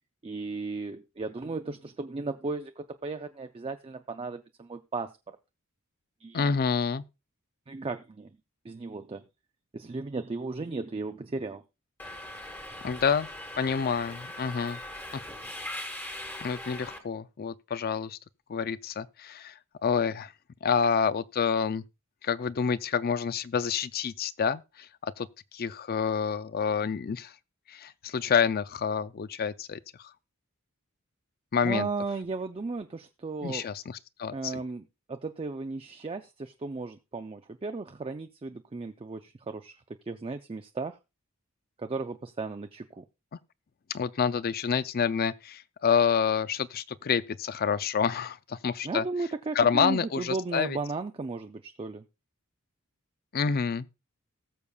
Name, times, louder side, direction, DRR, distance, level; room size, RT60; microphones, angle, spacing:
voice 1, 0.2-5.1 6.2-6.5 7.7-8.3 8.6-9.2 9.7-11.6 31.6-33.6 34.3-41.0 41.8-43.0 48.8-52.0, right 3 dB, 25° right, 0.4 m, -35 dB
voice 2, 6.3-7.0 12.8-13.3 13.6-14.8 16.4-18.2 18.5-19.5 19.8-20.3 20.6-21.8 22.2-25.3 25.5-27.3 27.7-29.8 31.5-31.9 33.4-34.6 43.9-49.0 49.5-50.8 53.3-53.9, left 6 dB, 45° left, 0.4 m, -28 dB
Subway metro underground, 12.0-17.0, left 1 dB, 10° left, 1.3 m, -40 dB
19.0 x 6.9 x 2.3 m
head